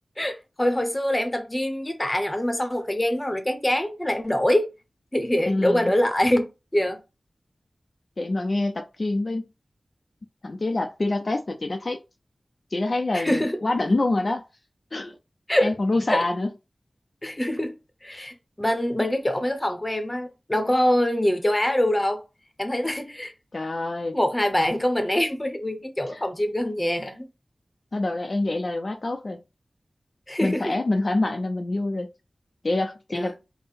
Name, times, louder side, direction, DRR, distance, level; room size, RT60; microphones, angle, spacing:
voice 1, 0.2-4.7 5.1-7.0 13.1-13.6 15.5-15.7 16.1-16.3 17.2-17.8 18.0-22.2 22.6-23.3 24.1-27.3 30.3-30.7 33.1-33.3, left 1 dB, 20° left, 0.8 m, -24 dB
voice 2, 5.5-5.9 8.2-9.5 10.4-12.0 12.7-14.4 14.9-15.2 15.6-16.5 23.5-24.2 26.1-26.2 27.9-29.4 30.4-32.1 32.6-33.4, left 2 dB, 55° left, 0.5 m, -26 dB
3.6 x 2.1 x 4.2 m
wide cardioid pair, 60°, 0 cm